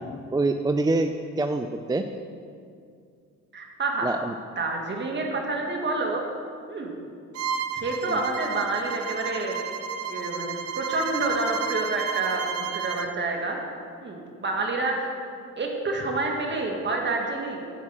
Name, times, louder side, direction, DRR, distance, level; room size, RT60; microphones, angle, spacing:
voice 1, 0.3-2.0 4.0-4.3 8.1-8.2, right 2 dB, 15° right, 6 dB, 0.4 m, -25 dB
voice 2, 3.5-4.1 4.6-6.2 6.7-6.9 7.8-9.6 10.1-13.6 14.0-15.0 15.6-17.7, right 2 dB, 35° right, 1 dB, 1.9 m, -28 dB
Bowed string instrument, 7.3-13.1, right 7 dB, 55° right, 0.6 m, -32 dB
11.0 x 4.8 x 7.5 m, 2.3 s
cardioid pair, 90°, 30 cm